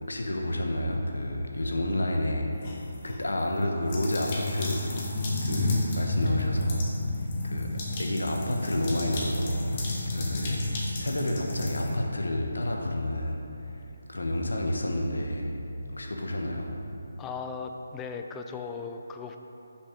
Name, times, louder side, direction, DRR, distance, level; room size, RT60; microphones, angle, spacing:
voice 1, 0.0-4.9 5.4-7.7 8.0-13.4 13.7-13.8 14.1-15.5 15.9-16.7, left 1 dB, 75° left, 1 dB, 1.0 m, -30 dB
sound 1, 2.6-3.2 3.9-12.0, left 2 dB, 35° left, 1.3 m, -31 dB
voice 2, 17.2-19.4, left 5 dB, 10° left, 5 dB, 0.4 m, -37 dB
6.7 x 5.4 x 5.1 m, 2.9 s
figure-of-eight pair, 150°, 0 cm